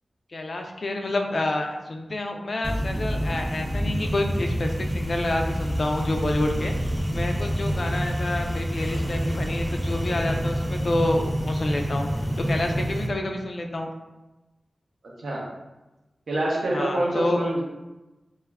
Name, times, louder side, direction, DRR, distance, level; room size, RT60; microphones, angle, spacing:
voice 1, 0.3-13.9 16.7-17.4, left 1 dB, 55° left, 3 dB, 0.3 m, -28 dB
sound 1, 2.6-13.1, equal, 10° right, 0.4 m, -27 dB
voice 2, 16.3-17.6, right 1 dB, 90° right, -3 dB, 0.6 m, -26 dB
2.2 x 2.0 x 3.3 m, 1.1 s
wide cardioid pair, 90°, 0 cm